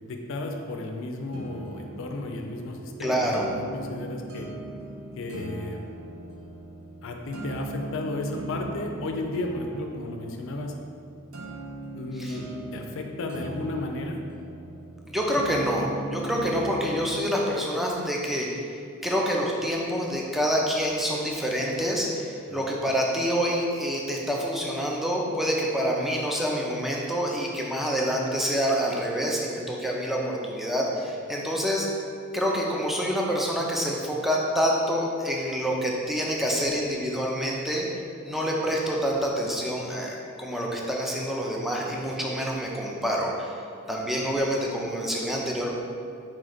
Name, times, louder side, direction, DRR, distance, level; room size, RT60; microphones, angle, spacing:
voice 1, 0.1-4.5 5.2-5.8 7.0-10.8 11.9-12.4 12.7-14.2 22.5-22.6, left 2 dB, 65° left, 3 dB, 0.5 m, -33 dB
sound 1, 1.3-17.3, right 1 dB, 75° right, 0.6 m, -39 dB
voice 2, 3.0-3.5 12.2-12.4 15.1-18.6 19.0-31.9 32.3-37.9 38.2-43.6 43.9-45.7, equal, ahead, -3 dB, 0.5 m, -27 dB
4.4 x 3.1 x 3.9 m, 2.3 s
head